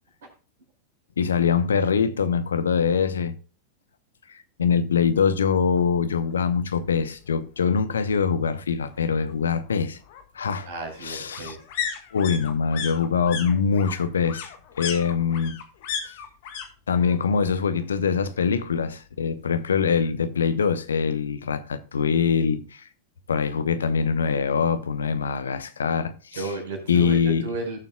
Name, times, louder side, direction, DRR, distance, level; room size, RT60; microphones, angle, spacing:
voice 1, 1.2-3.3 4.3-10.0 10.3-10.7 11.0-11.6 12.1-14.5 14.8-15.6 16.0-16.2 16.9-22.9 23.3-26.5 26.9-27.5, left 6 dB, 70° left, 0.9 m, -23 dB
sound 1, 5.8-5.9 6.2-6.3 6.6-7.6 8.9-16.7 16.9-17.5 17.8-18.8 19.1-19.2, left 7 dB, 50° left, 1.9 m, -36 dB
voice 2, 10.6-11.6 26.3-27.9, right 2 dB, 60° right, 4.8 m, -33 dB
17.5 x 7.2 x 2.3 m
figure-of-eight pair, 90°, 0 cm